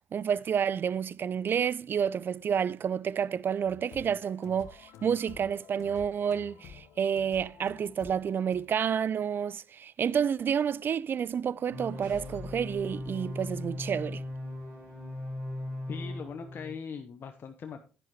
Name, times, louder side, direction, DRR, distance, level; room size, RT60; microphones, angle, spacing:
voice 1, 0.1-14.2, right 7 dB, 45° right, 0.4 m, -29 dB
sound 1, 3.6-8.7, left 6 dB, 70° left, 1.1 m, -51 dB
sound 2, 11.2-14.3, left 3 dB, 65° right, 6.0 m, -50 dB
sound 3, 11.7-16.7, left 1 dB, 80° right, 4.4 m, -38 dB
voice 2, 15.9-17.8, left 6 dB, 50° left, 1.0 m, -40 dB
10.5 x 10.0 x 3.0 m
supercardioid pair, 60°, 5 cm